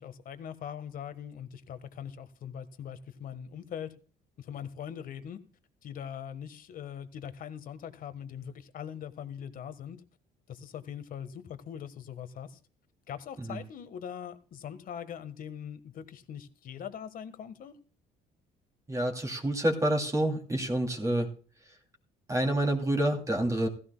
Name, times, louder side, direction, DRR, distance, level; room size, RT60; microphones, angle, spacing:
voice 1, 0.0-3.9 4.4-5.4 5.8-10.0 10.5-12.6 13.1-17.8, left 8 dB, 55° left, 1.4 m, -41 dB
voice 2, 18.9-21.3 21.6-21.8 22.3-23.7, right 1 dB, 20° right, 2.7 m, -28 dB
16.0 x 15.5 x 2.3 m
cardioid pair, 110°, 17 cm